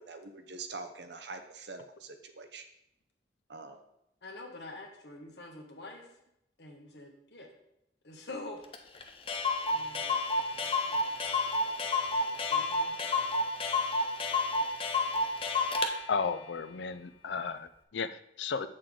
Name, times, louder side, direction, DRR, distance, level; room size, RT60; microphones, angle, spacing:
voice 1, 0.0-2.6 3.5-3.8, right 3 dB, 75° right, 7 dB, 0.8 m, -44 dB
voice 2, 4.2-6.1 6.6-7.5 8.0-8.6 9.7-10.2 10.5-11.1 12.3-13.3, left 2 dB, 70° left, 2 dB, 1.3 m, -47 dB
Clock, 8.7-8.8 9.0-9.1 9.3-15.9, left 3 dB, 30° left, 0.6 m, -30 dB
voice 3, 16.1-18.7, left 5 dB, 85° left, 12 dB, 0.5 m, -34 dB
7.6 x 6.5 x 3.8 m, 0.81 s
head